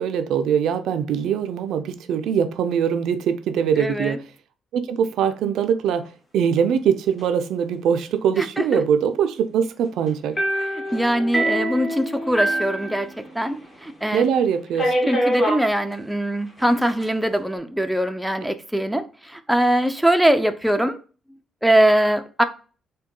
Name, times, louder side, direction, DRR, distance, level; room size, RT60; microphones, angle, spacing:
voice 1, 0.0-4.2 4.7-6.1 6.3-10.4 14.1-15.1, right 8 dB, 80° right, 0.4 m, -22 dB
voice 2, 3.8-4.2 8.4-8.8 10.9-13.1 13.4-14.2 15.1-21.0 21.6-22.4, right 1 dB, 5° right, 0.4 m, -21 dB
sound 1, 10.4-13.6 13.9-14.0 14.8-15.7 16.6-17.0, right 1 dB, 30° left, 1.2 m, -24 dB
3.6 x 2.2 x 3.6 m
cardioid pair, 90°, 0 cm